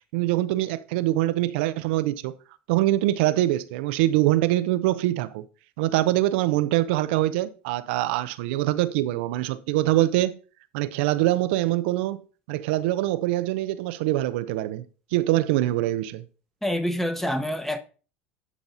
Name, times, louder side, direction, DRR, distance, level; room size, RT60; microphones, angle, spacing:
voice 1, 0.1-2.3 2.7-5.4 5.8-10.4 10.7-12.2 12.5-14.8 15.1-16.3, right 16 dB, 75° right, 0.6 m, -24 dB
voice 2, 16.6-17.8, equal, 5° left, 1.1 m, -26 dB
10.5 x 4.1 x 4.0 m
hypercardioid pair, 90°, 6 cm